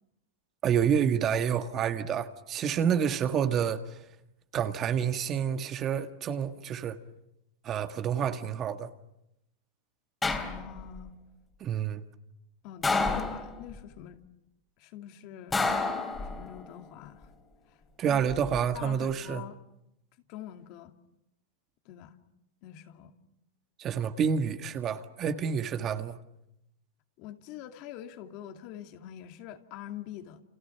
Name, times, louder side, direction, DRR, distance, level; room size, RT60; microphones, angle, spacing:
voice 1, 0.6-4.0 4.5-7.0 7.6-8.9 11.6-12.0 18.0-19.4 23.8-26.2, right 8 dB, 30° right, 1.8 m, -28 dB
sound 1, 10.2-11.0 12.8-13.8 15.5-16.7 18.1-18.6, left 3 dB, 10° left, 3.2 m, -30 dB
voice 2, 10.3-11.2 12.6-14.2 14.8-15.6 16.2-17.3 17.7-18.2 18.7-19.6 20.3-20.9 21.9-22.2 22.6-23.2 27.2-30.4, left 11 dB, 50° left, 2.5 m, -45 dB
30.0 x 28.5 x 5.9 m
supercardioid pair, 140°, 0 cm